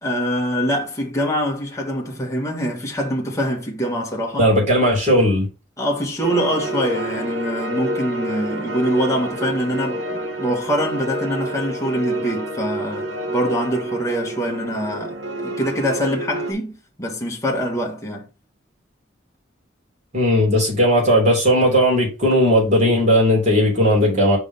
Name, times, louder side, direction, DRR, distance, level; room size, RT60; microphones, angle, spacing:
voice 1, 0.0-4.5 5.8-15.2 15.4-18.3, equal, 15° left, 1.4 m, -24 dB
voice 2, 4.4-5.5 20.1-24.4, equal, 35° right, 3.3 m, -16 dB
sound 1, 6.2-16.5, right 1 dB, 65° right, 1.0 m, -28 dB
5.0 x 3.7 x 5.4 m
head